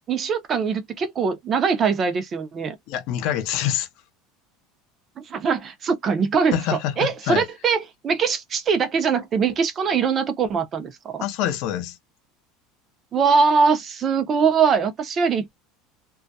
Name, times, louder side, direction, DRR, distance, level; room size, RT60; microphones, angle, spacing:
voice 1, 0.1-2.8 5.2-11.2 13.1-15.6, right 5 dB, 30° right, 0.6 m, -22 dB
voice 2, 2.9-3.9 6.5-7.4 11.2-12.0, left 10 dB, 60° left, 0.7 m, -25 dB
2.2 x 2.1 x 2.7 m
supercardioid pair, 145°, 0 cm